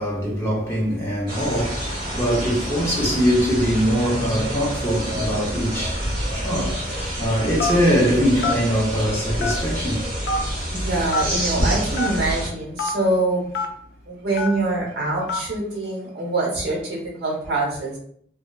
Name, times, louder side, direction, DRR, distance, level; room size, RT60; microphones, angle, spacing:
voice 1, 0.0-10.1, equal, 15° left, 0.6 m, -22 dB
sound 1, 1.3-12.5, equal, 30° right, 1.0 m, -27 dB
Telephone, 7.6-7.9 8.4-8.6 9.4-9.8 10.3-10.4 11.1-11.3 11.9-12.1 12.8-12.9 13.5-13.7 14.4-14.6 15.3-15.5, left 3 dB, 75° left, 0.4 m, -24 dB
voice 2, 10.7-13.4 14.1-18.0, right 2 dB, 70° right, 1.0 m, -24 dB
2.6 x 2.2 x 2.3 m
head